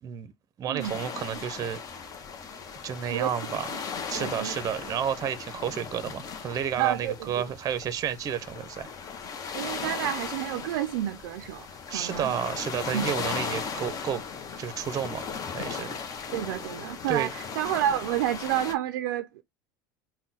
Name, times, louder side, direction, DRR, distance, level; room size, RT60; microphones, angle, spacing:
voice 1, 0.0-0.3 0.6-1.8 2.8-3.7 4.1-8.9 11.9-14.2 14.6-15.3 15.5-15.9 17.1-17.3, right 8 dB, 35° right, 0.6 m, -31 dB
sound 1, 0.8-18.7, left 6 dB, 35° left, 0.8 m, -37 dB
voice 2, 4.1-4.6 6.8-7.4 9.5-12.4 12.9-13.1 16.3-19.4, right 12 dB, 80° right, 0.4 m, -30 dB
3.7 x 2.2 x 4.0 m
supercardioid pair, 110°, 11 cm